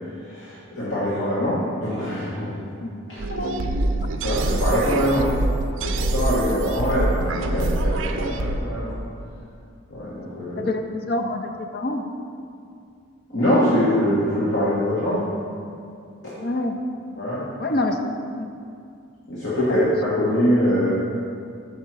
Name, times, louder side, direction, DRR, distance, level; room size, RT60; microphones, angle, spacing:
voice 1, 0.2-2.5 3.1-3.2 4.2-5.3 5.8-8.9 9.9-10.7 13.3-15.2 16.2-16.3 17.2-17.4 19.3-20.9, equal, 70° left, -10 dB, 1.4 m, -23 dB
sound 1, 3.2-8.6, right 2 dB, 70° right, 0.4 m, -25 dB
voice 2, 3.3-3.6 6.5-6.7 10.6-12.1 16.4-16.7 17.6-18.0 18.3-18.5 19.7-19.9, left 2 dB, 45° left, 4 dB, 0.4 m, -27 dB
5.6 x 4.4 x 6.0 m, 2.4 s
head